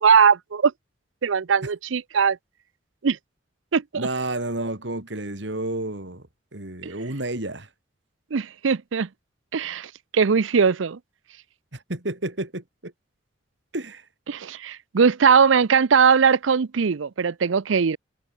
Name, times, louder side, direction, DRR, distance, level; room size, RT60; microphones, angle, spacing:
voice 1, 0.0-0.7 1.2-2.4 3.0-3.2 3.7-4.1 8.3-9.1 9.5-11.0 14.3-18.0, right 6 dB, 85° right, 0.6 m, -20 dB
voice 2, 3.9-6.3 6.5-7.7 11.7-12.9 13.7-14.1, right 2 dB, 70° right, 3.0 m, -30 dB
head